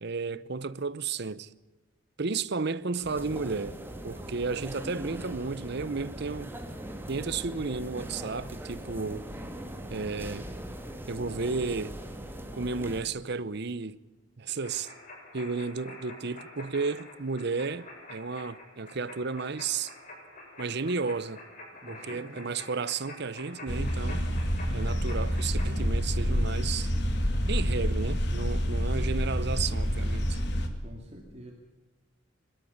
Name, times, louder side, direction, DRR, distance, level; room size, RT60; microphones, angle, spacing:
voice 1, 0.0-1.5 2.2-3.8 4.0-6.6 7.1-9.3 9.9-10.5 11.1-12.0 12.5-14.0 14.4-14.9 15.3-19.9 20.6-21.4 21.9-24.3 24.7-26.9 27.5-30.4, right 4 dB, 60° right, 0.8 m, -33 dB
sound 1, 3.0-13.0, right 1 dB, 10° right, 2.1 m, -40 dB
sound 2, 14.6-25.7, left 2 dB, 40° left, 7.4 m, -47 dB
voice 2, 21.7-22.6 24.5-25.1 30.8-31.5, equal, 35° right, 2.5 m, -47 dB
sound 3, 23.7-30.7, equal, 60° left, 2.6 m, -28 dB
23.0 x 13.0 x 9.6 m
head